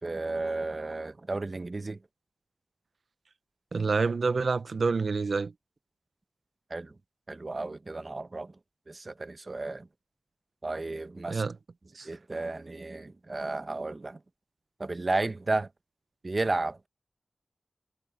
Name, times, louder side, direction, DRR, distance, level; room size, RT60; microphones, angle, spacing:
voice 1, 0.0-2.0 6.7-6.9 7.3-8.5 8.9-9.9 10.6-11.4 12.0-14.2 14.8-15.7 16.2-16.9, right 2 dB, 45° right, 1.0 m, -33 dB
voice 2, 3.7-5.5 11.3-11.6 12.0-12.1, right 4 dB, 75° right, 0.8 m, -27 dB
wide cardioid pair, 75°, 0 cm